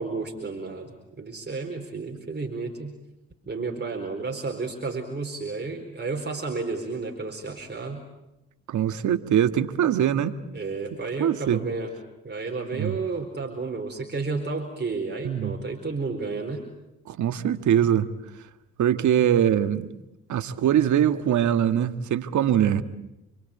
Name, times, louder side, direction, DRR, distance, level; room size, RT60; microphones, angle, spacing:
voice 1, 0.0-3.0 3.5-8.0 10.5-11.9 12.2-16.6, right 4 dB, 30° right, 2 dB, 4.5 m, -32 dB
voice 2, 8.7-10.4 11.2-11.6 12.7-13.0 15.2-15.6 17.1-18.1 18.8-19.9 20.3-22.8, right 10 dB, 60° right, 10 dB, 1.8 m, -22 dB
28.5 x 24.0 x 8.5 m, 0.92 s
hypercardioid pair, 55°, 33 cm